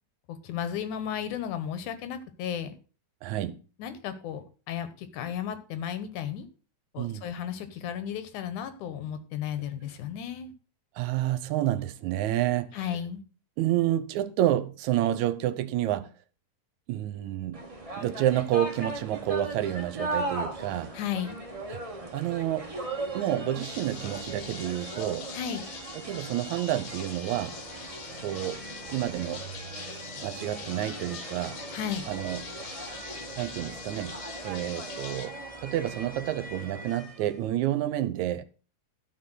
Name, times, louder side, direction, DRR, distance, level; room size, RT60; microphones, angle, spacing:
voice 1, 0.4-2.7 3.8-6.5 6.9-10.5 12.7-13.2 20.9-21.4 25.3-25.6 31.7-32.0, left 9 dB, 85° left, 2.6 m, -34 dB
voice 2, 3.2-3.6 7.0-7.3 11.0-12.8 13.6-16.1 16.9-17.6 18.0-20.9 21.7-21.8 22.1-22.7 23.1-25.3 26.0-27.6 28.2-28.6 28.9-29.4 30.2-31.6 32.1-32.9 33.4-34.2 34.4-38.5, right 13 dB, 80° right, 2.0 m, -29 dB
sound 1, 17.5-37.4, right 2 dB, 45° right, 0.4 m, -39 dB
sound 2, 23.6-35.3, left 6 dB, 65° left, 2.9 m, -43 dB
13.0 x 4.8 x 6.2 m
omnidirectional pair, 3.4 m